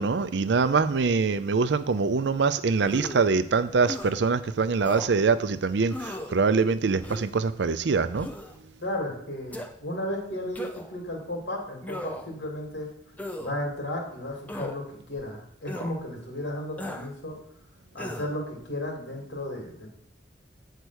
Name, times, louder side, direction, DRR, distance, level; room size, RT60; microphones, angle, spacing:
voice 1, 0.0-8.3, right 4 dB, 75° right, 0.5 m, -24 dB
sound 1, 2.8-3.3 3.9-4.1 4.8-5.1 5.9-6.4 7.0-7.4 8.1-8.6 9.5-9.7 10.6-11.0 11.8-12.3 13.2-13.5 14.5-14.8 15.7-15.9 16.8-17.1 18.0-18.3, left 1 dB, 10° left, 0.6 m, -36 dB
voice 2, 8.8-12.9 13.4-17.4 17.9-19.9, left 1 dB, 80° left, 2.9 m, -34 dB
8.2 x 4.5 x 6.3 m
head